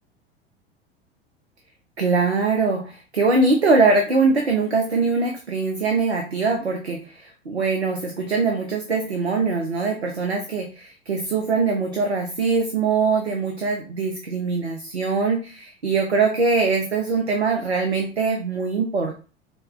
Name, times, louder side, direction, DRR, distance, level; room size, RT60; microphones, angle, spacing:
voice 1, 2.0-19.1, right 4 dB, 90° right, 3 dB, 0.5 m, -22 dB
4.3 x 2.0 x 2.3 m, 0.37 s
figure-of-eight pair, 80°, 31 cm